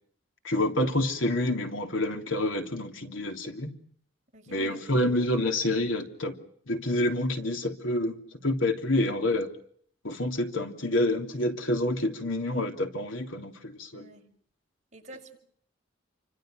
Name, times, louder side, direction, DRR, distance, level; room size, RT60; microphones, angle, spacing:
voice 1, 0.4-3.7 4.5-6.3 6.7-8.2 8.4-9.5 10.0-14.1, left 1 dB, 80° left, 3.3 m, -28 dB
voice 2, 4.3-5.1 13.9-14.3 14.9-15.4, right 1 dB, 40° right, 7.0 m, -48 dB
29.5 x 25.0 x 6.5 m
head